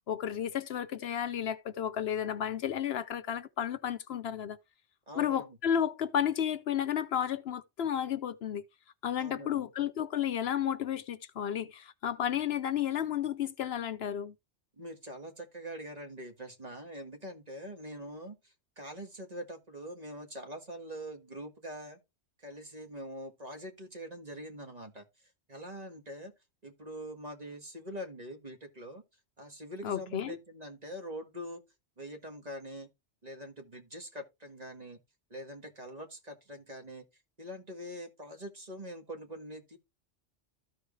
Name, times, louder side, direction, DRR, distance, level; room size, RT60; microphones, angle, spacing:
voice 1, 0.1-4.6 5.1-8.6 9.0-14.3 29.8-30.4, left 9 dB, 70° left, 0.9 m, -32 dB
voice 2, 5.1-5.6 9.2-9.7 14.8-22.0 22.4-25.0 25.5-26.3 26.6-29.0 29.4-31.6 32.0-32.9 33.2-35.0 35.3-37.0 37.4-39.8, equal, 35° right, 1.8 m, -44 dB
14.0 x 4.7 x 3.1 m
omnidirectional pair, 1.1 m